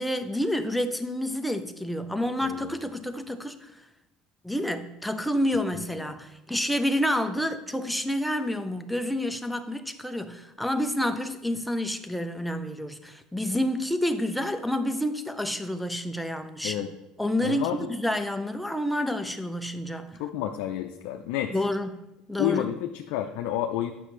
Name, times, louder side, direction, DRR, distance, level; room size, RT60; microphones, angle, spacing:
voice 1, 0.0-3.8 4.4-16.8 17.2-20.2 21.5-22.0 22.3-22.7, left 1 dB, ahead, 0.5 m, -29 dB
voice 2, 17.4-17.9 20.2-21.5 22.4-23.9, left 11 dB, 75° left, 0.5 m, -30 dB
8.4 x 5.9 x 3.2 m
supercardioid pair, 125°, 0 cm